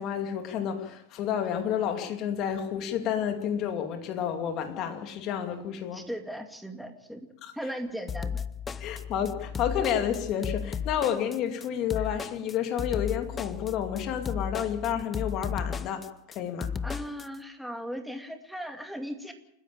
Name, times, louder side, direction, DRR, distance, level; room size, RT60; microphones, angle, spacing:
voice 1, 0.0-6.0 7.4-7.5 8.8-16.7, left 9 dB, 40° left, 2.6 m, -30 dB
voice 2, 5.9-7.3 7.5-8.4 8.8-8.9 16.8-19.3, equal, ahead, 2.3 m, -37 dB
sound 1, 8.1-17.3, left 7 dB, 20° left, 0.7 m, -35 dB
28.5 x 10.0 x 8.9 m
supercardioid pair, 145°, 0 cm